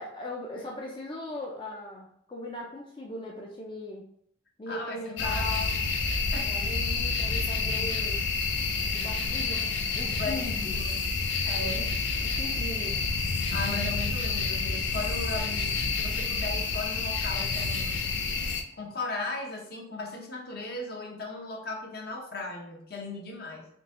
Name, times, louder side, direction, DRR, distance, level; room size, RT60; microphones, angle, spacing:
voice 1, 0.0-4.1 4.6-5.8 6.4-8.2 8.9-11.0 11.6-11.9 12.2-13.0, left 1 dB, 25° left, -2 dB, 0.5 m, -39 dB
voice 2, 4.7-5.8 6.3-6.5 10.1-11.1 11.4-12.0 13.5-18.1 18.7-23.7, left 3 dB, 55° left, 1 dB, 0.9 m, -37 dB
sound 1, 5.2-18.6, left 4 dB, 85° left, 0.5 m, -29 dB
3.8 x 2.8 x 3.7 m, 0.70 s
head